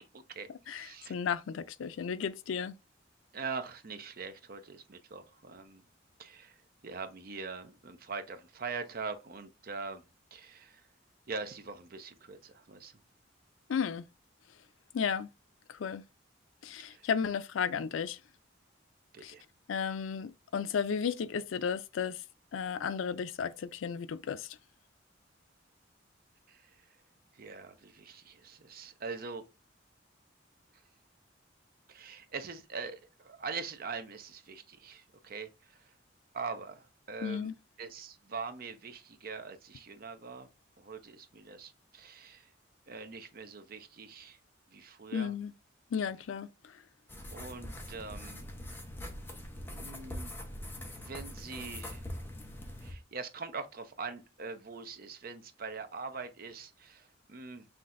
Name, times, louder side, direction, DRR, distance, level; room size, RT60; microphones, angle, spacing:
voice 1, 0.1-1.2 3.3-5.8 6.2-6.6 6.8-10.0 10.3-10.9 11.3-13.0 16.9-17.1 19.1-19.4 26.5-26.9 27.3-29.4 30.7-30.8 31.9-35.9 36.3-37.5 37.8-40.5 40.8-42.5 42.9-44.4 44.7-45.3 47.3-48.5 49.6-50.4 50.7-52.1 52.8-57.7, right 4 dB, 50° right, 0.7 m, -43 dB
voice 2, 0.7-2.8 13.7-14.0 14.9-15.3 15.7-16.0 16.6-18.2 19.2-19.3 19.7-22.2 22.5-24.5 37.2-37.5 45.1-45.5 45.9-46.7, left 6 dB, 90° left, 0.4 m, -34 dB
sound 1, 47.1-52.9, left 1 dB, 10° left, 0.8 m, -43 dB
5.8 x 3.3 x 2.5 m
head